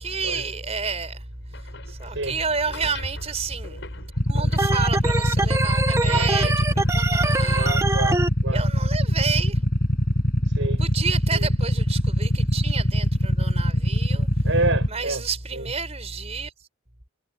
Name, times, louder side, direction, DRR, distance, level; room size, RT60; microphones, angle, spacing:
voice 1, 0.0-7.8 8.5-9.7 10.8-14.5 14.9-16.5, right 4 dB, 35° right, 4.6 m, -30 dB
sound 1, 1.3-9.3, left 1 dB, 65° left, 7.8 m, -41 dB
Motorcycle / Idling, 4.2-14.9, equal, 50° left, 6.2 m, -22 dB
Organ, 4.6-8.3, right 2 dB, 15° right, 0.9 m, -25 dB
voice 2, 7.5-8.6 10.4-10.8 11.3-11.5 14.4-15.2 15.5-15.7, right 2 dB, 70° right, 6.9 m, -28 dB
head